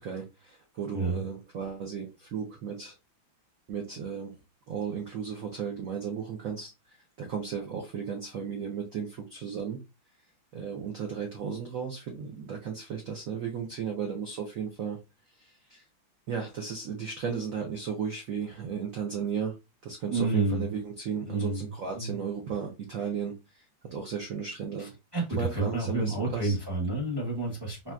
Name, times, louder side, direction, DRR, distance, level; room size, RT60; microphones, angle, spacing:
voice 1, 0.0-2.9 3.7-4.3 4.7-9.8 10.5-15.0 15.4-15.8 16.3-19.6 19.8-23.6 23.9-24.9 25.3-26.6, right 6 dB, 70° right, 2 dB, 0.8 m, -35 dB
voice 2, 20.1-20.7 21.2-21.7 21.9-22.2 24.8-27.9, right 2 dB, 25° right, -2 dB, 0.5 m, -30 dB
4.2 x 2.7 x 2.3 m, 0.25 s
omnidirectional pair, 2.2 m